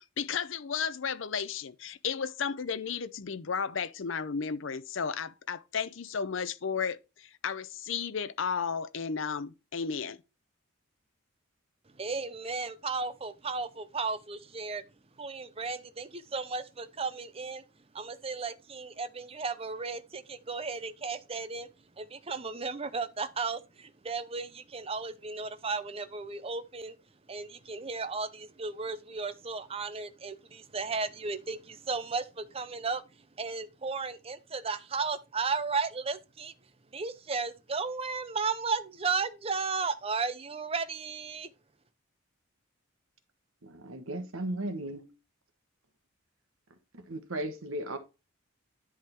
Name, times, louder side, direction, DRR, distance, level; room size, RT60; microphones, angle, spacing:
voice 1, 0.0-10.2, left 6 dB, 65° left, 0.6 m, -33 dB
voice 2, 12.0-14.8 15.2-17.6 17.9-21.7 22.0-26.9 27.3-33.0 33.4-36.5 36.9-41.5, right 4 dB, 30° right, 0.6 m, -34 dB
voice 3, 43.6-45.1 46.9-48.0, right 1 dB, 80° right, 1.3 m, -36 dB
10.5 x 3.7 x 4.4 m
head